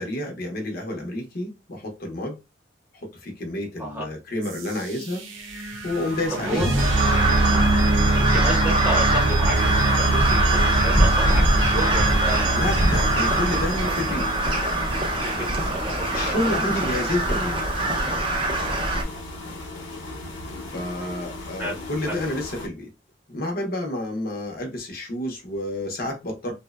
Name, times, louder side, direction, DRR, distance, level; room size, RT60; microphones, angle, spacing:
voice 1, 0.0-2.4 2.9-5.3 5.8-6.8 7.5-7.7 12.5-14.3 15.9-17.6 19.4-19.6 20.7-22.9 23.3-26.5, left 1 dB, 50° left, 0.6 m, -29 dB
sound 1, 4.4-15.2, right 2 dB, 80° right, 0.6 m, -24 dB
voice 2, 6.3-6.7 7.0-7.1 8.1-12.7 13.2-13.3 15.2-16.8 18.6-18.9 21.6-22.2, right 1 dB, 10° right, 0.9 m, -32 dB
Crow, 6.8-19.0, right 1 dB, 25° right, 0.5 m, -23 dB
sound 2, 9.5-22.7, left 2 dB, 85° left, 0.7 m, -37 dB
2.6 x 2.0 x 2.3 m
head